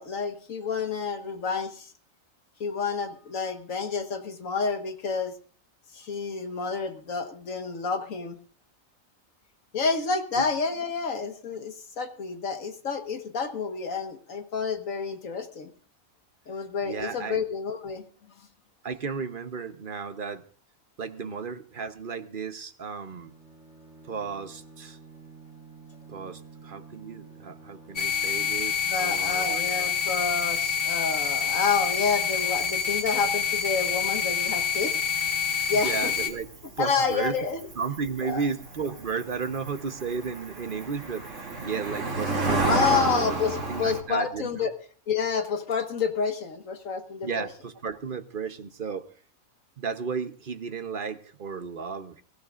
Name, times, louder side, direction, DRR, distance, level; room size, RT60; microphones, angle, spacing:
voice 1, 0.0-1.9 2.6-5.3 5.9-8.4 9.7-15.7 16.5-18.0 28.9-34.9 35.7-36.1 36.8-37.6 38.2-38.4 42.6-44.7 45.1-47.5, left 5 dB, 75° left, 6 dB, 1.9 m, -29 dB
voice 2, 16.8-17.4 18.8-20.4 21.0-23.3 24.0-25.0 26.1-29.6 35.7-36.5 36.8-37.4 37.8-42.6 42.9-43.3 43.7-44.7 47.2-49.1 49.8-52.2, right 5 dB, 45° right, 10 dB, 1.0 m, -34 dB
Bowed string instrument, 23.0-29.0, right 4 dB, 5° right, 6.3 m, -49 dB
sound 1, 28.0-36.3, left 7 dB, 45° left, 1.8 m, -27 dB
Cricket, 35.1-44.0, right 3 dB, 60° right, 3.2 m, -31 dB
23.5 x 15.5 x 2.5 m, 0.42 s
omnidirectional pair, 1.4 m